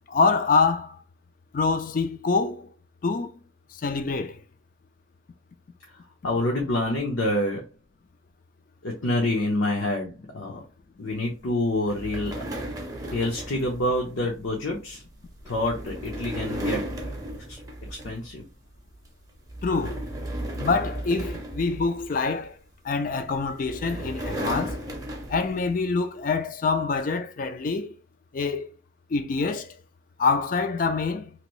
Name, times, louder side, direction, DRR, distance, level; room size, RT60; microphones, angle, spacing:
voice 1, 0.1-1.0 1.5-2.7 3.0-3.3 3.7-4.4 19.6-20.0 20.6-22.6 22.8-24.8 25.3-28.0 28.3-28.7 29.1-29.8 30.2-31.3, left 4 dB, 40° left, 0.3 m, -25 dB
voice 2, 6.2-7.7 8.8-10.6 11.0-12.4 13.1-15.0 15.5-16.9 17.5-17.6 17.9-18.4, left 1 dB, 80° left, 0.8 m, -27 dB
sound 1, 11.9-18.4 18.8-19.1 19.5-22.5 23.3-25.7, right 1 dB, 20° right, 0.6 m, -35 dB
2.9 x 2.6 x 3.0 m
head